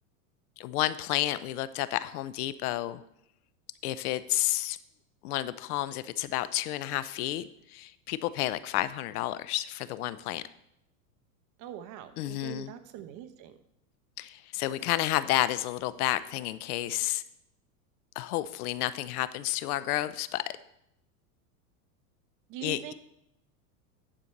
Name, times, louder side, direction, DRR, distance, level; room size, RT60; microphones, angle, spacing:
voice 1, 0.6-3.0 3.8-4.8 5.2-10.4 12.2-12.7 14.2-17.2 18.2-20.4 22.6-22.9, left 15 dB, 70° left, 15 dB, 0.7 m, -31 dB
voice 2, 11.6-13.5 22.5-22.9, right 11 dB, 40° right, 9 dB, 1.0 m, -42 dB
10.0 x 4.5 x 6.5 m, 0.79 s
supercardioid pair, 125°, 46 cm